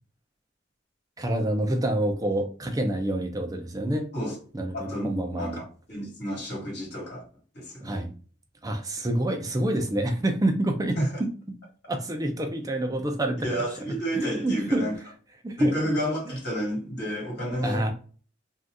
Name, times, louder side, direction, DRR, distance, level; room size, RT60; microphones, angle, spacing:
voice 1, 1.2-4.1 4.5-5.6 7.8-8.1 8.6-11.3 11.9-13.4 13.9-14.9 15.4-15.7 17.6-17.9, right 1 dB, 20° right, 0.5 m, -27 dB
voice 2, 4.7-5.1 5.4-7.3 7.5-8.0 11.0-11.2 13.4-14.9 15.6-17.9, equal, 55° left, 1.5 m, -30 dB
2.7 x 2.4 x 3.5 m
head